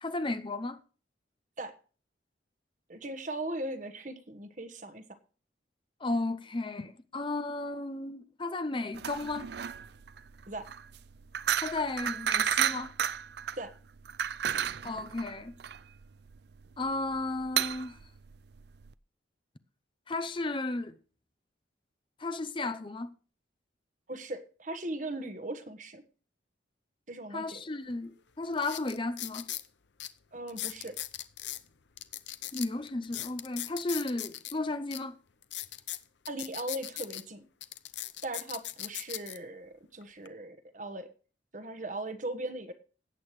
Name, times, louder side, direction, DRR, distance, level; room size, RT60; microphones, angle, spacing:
voice 1, 0.0-0.8 6.0-9.5 11.6-12.9 14.8-15.5 16.8-18.0 20.1-21.0 22.2-23.1 27.3-29.5 32.5-35.1, left 2 dB, 25° left, 0.7 m, -34 dB
voice 2, 2.9-5.0 10.5-10.7 13.6-13.7 24.1-26.0 27.1-27.6 30.3-31.0 36.3-37.4 38.2-41.1 41.5-42.7, right 1 dB, 40° right, 1.3 m, -38 dB
sound 1, 8.9-18.9, right 9 dB, 60° right, 0.4 m, -33 dB
sound 2, 27.9-28.0 28.5-29.7 30.0-30.1 30.5-31.6 32.0-34.5 34.9-35.0 35.4-37.2 37.6-39.4 40.0-40.3, left 14 dB, 70° left, 0.8 m, -39 dB
18.0 x 8.6 x 3.2 m
head